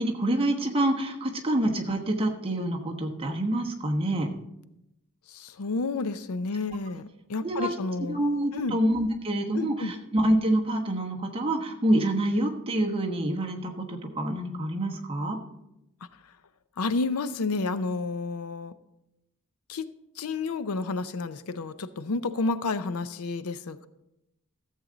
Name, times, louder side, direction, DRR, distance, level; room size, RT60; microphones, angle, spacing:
voice 1, 0.0-4.3 7.4-7.7 8.1-15.4, right 1 dB, 25° right, 1 dB, 1.1 m, -27 dB
voice 2, 5.3-8.2 8.5-8.8 9.5-9.9 16.8-18.7 19.7-19.9 20.2-23.9, left 3 dB, 75° left, 13 dB, 0.6 m, -30 dB
14.0 x 7.5 x 3.9 m, 0.87 s
head